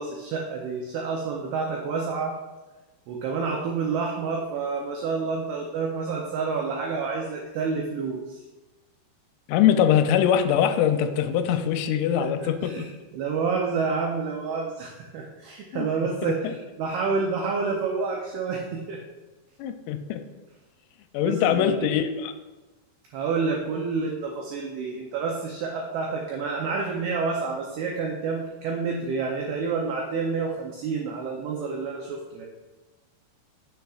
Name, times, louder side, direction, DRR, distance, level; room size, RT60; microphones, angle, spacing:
voice 1, 0.0-2.4 3.1-8.5 12.2-19.0 21.2-21.9 23.1-32.5, right 4 dB, 85° right, 0 dB, 2.2 m, -29 dB
voice 2, 9.5-12.9 15.7-15.9 16.4-16.5 19.6-20.2 21.1-22.3, left 9 dB, 85° left, 8 dB, 2.9 m, -22 dB
9.2 x 6.9 x 2.4 m, 1.2 s
omnidirectional pair, 5.4 m